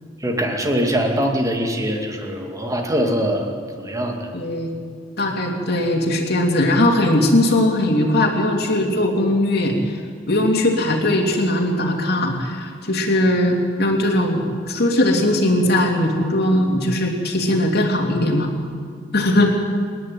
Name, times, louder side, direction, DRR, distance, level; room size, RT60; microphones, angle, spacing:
voice 1, 0.2-3.5 3.8-4.3 5.2-5.3, equal, 15° right, 2 dB, 2.3 m, -22 dB
voice 2, 4.3-4.8 5.2-9.9 10.3-18.5 19.1-19.5, left 1 dB, 50° left, 1 dB, 3.1 m, -19 dB
27.5 x 11.0 x 9.0 m, 2.1 s
head